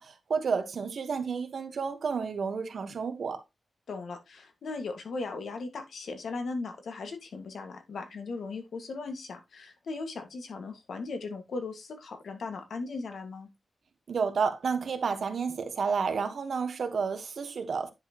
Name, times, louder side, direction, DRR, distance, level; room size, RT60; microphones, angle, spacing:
voice 1, 0.0-3.4 14.1-17.9, right 5 dB, 70° right, 1.3 m, -31 dB
voice 2, 3.9-13.5, left 3 dB, 85° left, 1.8 m, -38 dB
10.0 x 6.0 x 3.0 m
wide cardioid pair, 150°, 0 cm